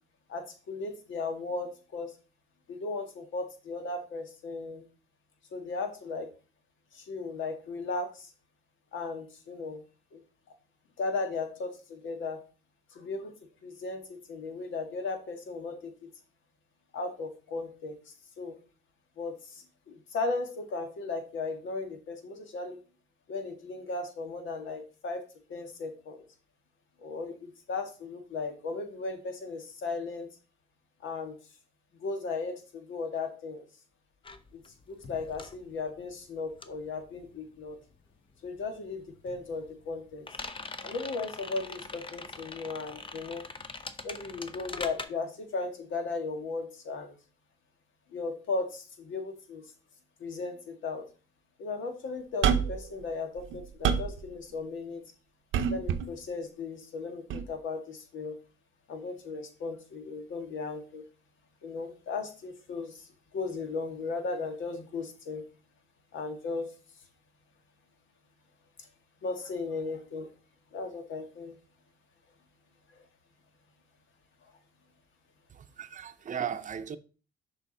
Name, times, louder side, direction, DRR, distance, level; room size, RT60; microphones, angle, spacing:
voice 1, 0.3-2.1 2.7-4.8 5.5-6.3 6.9-8.3 8.9-9.8 10.1-10.2 11.0-12.4 12.9-13.3 13.6-16.1 16.9-18.6 19.2-22.8 23.3-26.2 27.0-30.3 31.0-31.4 31.9-33.7 34.5-34.6 34.9-37.8 38.4-40.3 40.8-43.4 44.0-47.1 48.1-49.6 50.2-51.1 51.6-55.0 55.6-58.3 58.9-61.0 61.6-65.4 66.1-66.7 69.2-70.3 70.7-71.6, left 3 dB, 75° left, 1.6 m, -36 dB
sound 1, 34.2-38.1 38.3-45.1, left 3 dB, 25° left, 0.7 m, -43 dB
sound 2, 52.4-52.9 53.4-54.2 55.5-56.1 57.3-57.5, right 7 dB, 80° right, 0.7 m, -27 dB
voice 2, 75.5-77.0, right 8 dB, 40° right, 0.7 m, -36 dB
6.8 x 5.1 x 3.8 m
cardioid pair, 90°, 20 cm